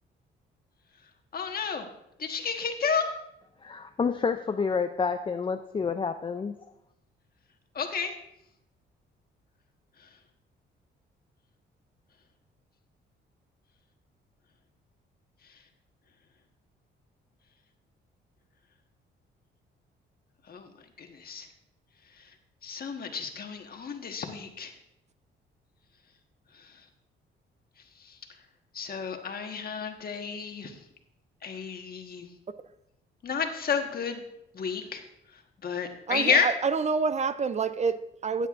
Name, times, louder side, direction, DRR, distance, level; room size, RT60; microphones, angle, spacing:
voice 1, 1.3-1.9 2.2-3.1 7.7-8.1 10.0-10.1 15.5-15.6 20.5-20.7 21.0-21.5 22.2-22.3 22.6-24.7 26.5-26.8 28.0-28.2 28.7-30.8 31.4-32.3 33.2-34.2 34.5-35.0 35.3-36.5, left 6 dB, 50° left, 1.4 m, -31 dB
voice 2, 3.6-6.5, left 5 dB, 25° left, 0.5 m, -29 dB
voice 3, 36.1-38.5, right 5 dB, 35° right, 0.5 m, -27 dB
14.5 x 9.1 x 2.5 m
cardioid pair, 90°, 20 cm